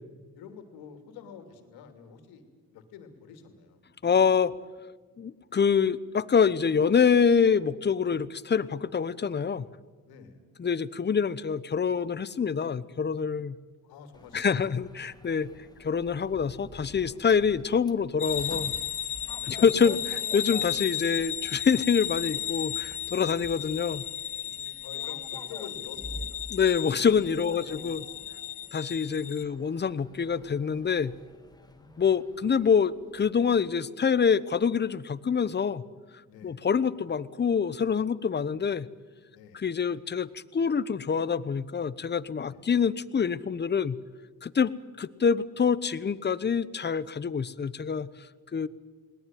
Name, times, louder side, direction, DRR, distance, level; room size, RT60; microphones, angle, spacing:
voice 1, 0.3-2.4 2.7-3.8 10.0-10.4 13.5-14.8 19.2-19.8 24.4-26.5 27.5-28.0 31.6-32.1 36.3-36.6 39.3-39.6 42.4-42.7 48.5-48.7, left 7 dB, 85° left, 7 dB, 2.9 m, -48 dB
voice 2, 4.0-4.5 5.2-9.6 10.6-13.6 14.3-15.5 15.8-18.7 19.5-19.9 20.3-24.0 26.5-28.0 28.7-31.1 32.0-35.8 36.4-38.9 39.5-44.0 44.4-48.1 48.5-48.7, left 6 dB, 30° left, 17 dB, 0.9 m, -26 dB
Sliding door, 14.1-33.7, left 1 dB, 10° left, 1.7 m, -49 dB
sound 1, 18.2-29.4, left 10 dB, 60° left, 1.7 m, -34 dB
21.5 x 18.5 x 9.3 m, 1.4 s
supercardioid pair, 70°, 36 cm